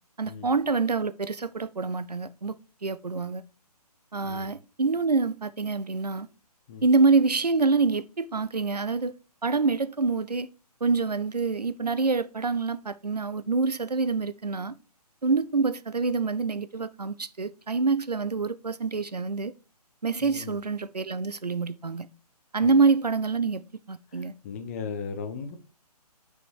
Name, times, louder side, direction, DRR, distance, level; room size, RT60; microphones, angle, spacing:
voice 1, 0.2-2.5 2.8-3.4 4.1-6.3 6.8-9.1 9.4-10.5 10.8-14.7 15.2-19.5 20.0-22.1 22.5-23.6 23.9-24.3, right 4 dB, 75° right, 0.7 m, -26 dB
voice 2, 20.2-20.6 22.6-22.7 24.1-25.6, left 5 dB, 20° left, 0.8 m, -37 dB
5.9 x 5.5 x 4.6 m
figure-of-eight pair, 135°, 21 cm